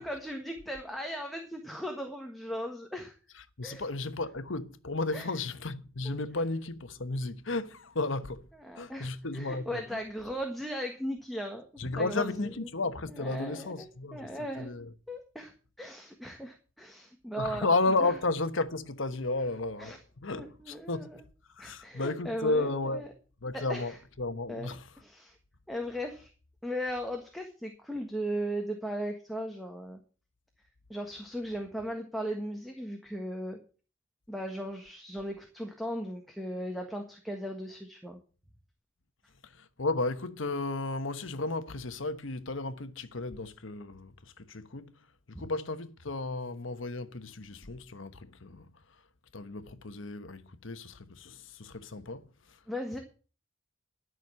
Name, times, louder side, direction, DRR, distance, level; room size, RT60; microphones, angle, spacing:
voice 1, 0.0-3.1 3.6-3.8 5.1-5.3 6.0-6.2 8.7-11.6 11.9-12.5 13.2-13.8 14.1-14.7 15.1-15.5 15.8-17.7 19.8-20.0 20.3-21.2 21.6-23.1 23.5-23.9 24.5-24.7 25.0-25.3 25.7-26.3 26.6-30.0 30.9-33.6 34.3-38.2 45.3-45.4 52.7-53.0, equal, ahead, 1.5 m, -37 dB
voice 2, 3.3-8.5 8.7-10.0 11.8-14.9 17.4-21.2 21.5-23.1 23.4-24.9 39.4-49.0 49.3-52.6, left 3 dB, 70° left, 1.2 m, -33 dB
12.5 x 6.4 x 8.7 m
head